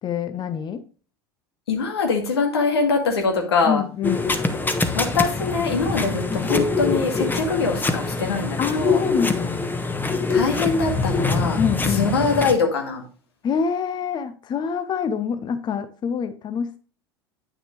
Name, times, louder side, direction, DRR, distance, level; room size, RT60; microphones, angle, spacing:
voice 1, 0.0-0.8 3.6-4.3 8.6-9.6 11.6-12.1 13.4-16.8, left 7 dB, 35° left, 0.8 m, -26 dB
voice 2, 1.7-3.8 4.9-9.0 10.3-11.6 12.0-13.0, left 4 dB, 85° left, 2.1 m, -23 dB
sound 1, 4.0-12.6, left 3 dB, 15° left, 1.1 m, -24 dB
8.9 x 6.3 x 3.2 m
hypercardioid pair, 80°, 13 cm